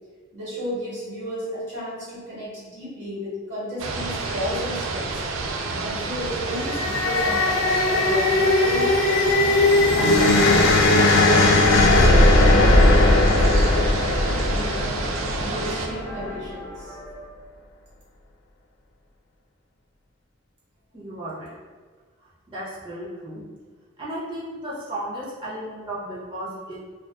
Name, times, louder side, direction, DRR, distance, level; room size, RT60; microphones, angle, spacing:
voice 1, 0.3-5.2 5.8-9.0 9.3-10.7 11.5-17.0, equal, 65° right, -10 dB, 1.2 m, -33 dB
sound 1, 3.8-15.9, right 3 dB, 90° right, 0.3 m, -29 dB
sound 2, 6.4-15.7, left 2 dB, 65° left, 0.3 m, -18 dB
sound 3, 14.0-17.3, equal, 25° left, 0.8 m, -37 dB
voice 2, 20.9-21.5 22.5-23.4 24.0-26.8, right 1 dB, 25° right, -8 dB, 0.6 m, -34 dB
2.4 x 2.3 x 2.2 m, 1.5 s
head